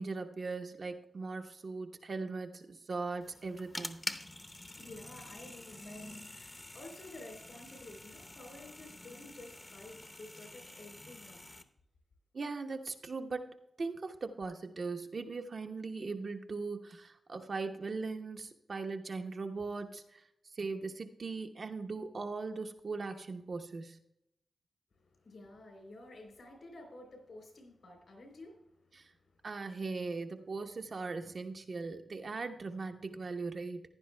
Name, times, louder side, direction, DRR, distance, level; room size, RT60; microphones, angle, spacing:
voice 1, 0.0-4.1 12.3-20.2 20.5-24.0 28.9-29.1 29.4-33.8, right 4 dB, 60° right, 5 dB, 0.9 m, -39 dB
sound 1, 3.2-11.6, left 1 dB, 30° left, 0.8 m, -47 dB
voice 2, 4.8-11.5 24.9-29.5, left 2 dB, 75° left, 3 dB, 3.4 m, -52 dB
15.5 x 10.5 x 2.2 m, 0.81 s
supercardioid pair, 40°, 0 cm